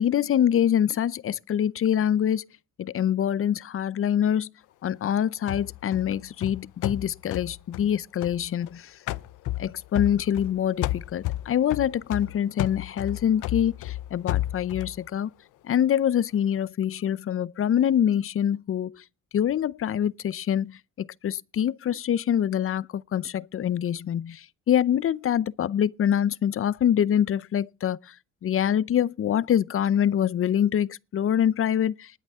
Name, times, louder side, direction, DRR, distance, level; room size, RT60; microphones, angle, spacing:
voice 1, 0.0-2.5 2.8-4.5 4.8-8.8 9.6-15.3 15.7-19.0 19.3-28.0 28.4-32.1, left 9 dB, 45° left, 0.6 m, -25 dB
sound 1, 5.5-8.7 9.1-10.5 10.8-15.0, left 16 dB, 85° left, 0.7 m, -32 dB
20.0 x 8.1 x 3.6 m
cardioid pair, 90°, 30 cm